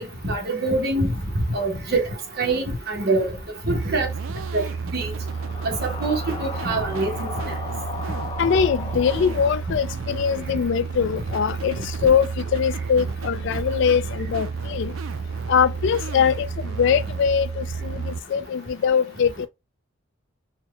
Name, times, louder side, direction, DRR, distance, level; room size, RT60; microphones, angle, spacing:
voice 1, 0.0-2.1 2.4-3.3 3.6-4.1 4.5-5.1 5.6-7.3 9.1-9.2 11.8-11.9, right 2 dB, 50° right, 1.2 m, -25 dB
sound 1, 3.7-18.2, right 5 dB, 85° right, 0.4 m, -31 dB
sound 2, 4.8-10.2, left 3 dB, 25° left, 0.7 m, -37 dB
voice 2, 8.4-14.9 15.5-19.5, left 7 dB, 60° left, 0.3 m, -22 dB
4.3 x 2.3 x 3.3 m
head